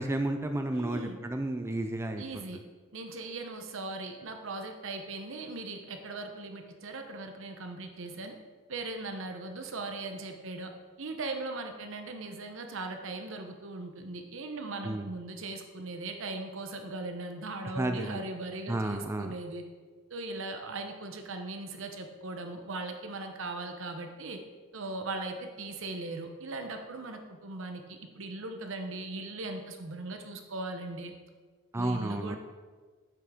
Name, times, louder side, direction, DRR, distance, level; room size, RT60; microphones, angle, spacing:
voice 1, 0.0-2.2 14.8-15.1 17.8-18.2 18.7-19.4 31.7-32.4, right 1 dB, 15° right, 6 dB, 0.4 m, -32 dB
voice 2, 0.7-1.2 2.2-2.6 2.9-8.4 8.7-10.7 11.0-19.6 20.1-24.4 24.7-31.1 31.7-32.4, right 2 dB, 70° right, 5 dB, 1.0 m, -39 dB
7.9 x 6.0 x 5.0 m, 1.5 s
head